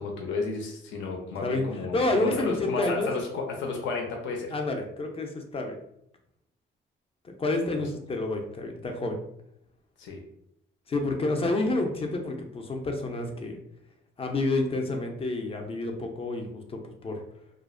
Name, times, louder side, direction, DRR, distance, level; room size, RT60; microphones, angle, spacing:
voice 1, 0.0-4.5 7.7-7.8 10.0-10.2, left 4 dB, 75° left, 1 dB, 0.6 m, -32 dB
voice 2, 1.9-3.1 4.5-5.8 7.2-9.2 10.9-13.6 14.2-17.2, left 2 dB, 30° left, 4 dB, 0.5 m, -29 dB
2.4 x 2.0 x 2.4 m, 0.76 s
cardioid pair, 90°, 20 cm